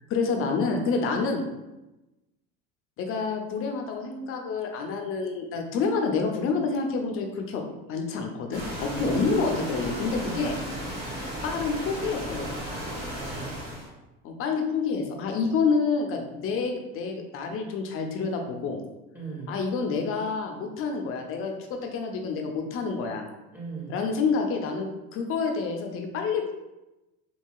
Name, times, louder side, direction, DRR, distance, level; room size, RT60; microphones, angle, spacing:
voice 1, 0.1-1.4 3.0-7.6 7.9-10.6 11.4-12.8 14.2-18.8 19.5-21.5 21.8-23.3 23.9-26.5, left 4 dB, 45° left, 3 dB, 0.6 m, -28 dB
sound 1, 8.5-13.9, equal, 30° right, 1.2 m, -35 dB
voice 2, 8.9-9.2 10.2-10.5 13.1-13.8 19.1-19.5 23.5-24.0, right 4 dB, 5° right, -5 dB, 1.1 m, -39 dB
2.9 x 2.8 x 2.3 m, 1.0 s
supercardioid pair, 110°, 31 cm